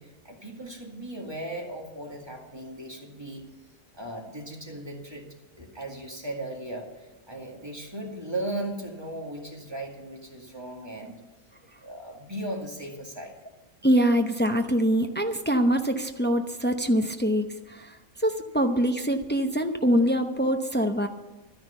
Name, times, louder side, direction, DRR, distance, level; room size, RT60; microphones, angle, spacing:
voice 1, 0.0-3.4 3.9-5.3 5.6-11.2 11.8-13.4, right 1 dB, 15° right, 0 dB, 2.2 m, -37 dB
voice 2, 13.8-21.1, equal, 10° left, 5 dB, 0.5 m, -24 dB
12.5 x 10.5 x 7.0 m, 1.1 s
omnidirectional pair, 1.5 m